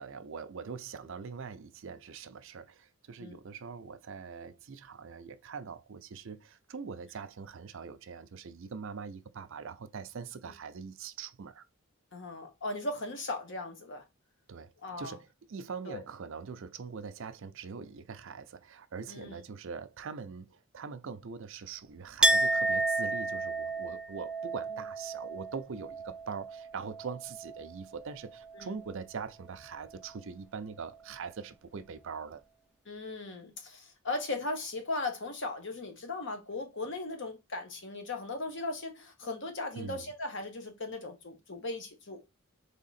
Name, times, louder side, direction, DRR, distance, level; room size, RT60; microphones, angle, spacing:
voice 1, 0.0-11.7 14.5-32.4 39.7-40.1, right 5 dB, 55° right, 0.5 m, -42 dB
voice 2, 12.1-14.0 14.8-15.2 15.9-16.0 19.1-19.3 28.5-28.7 32.9-42.2, left 2 dB, 55° left, 1.1 m, -37 dB
Chink clink, 22.2-27.7 28.0-28.9, right 2 dB, 5° right, 0.4 m, -31 dB
3.7 x 3.5 x 4.1 m
head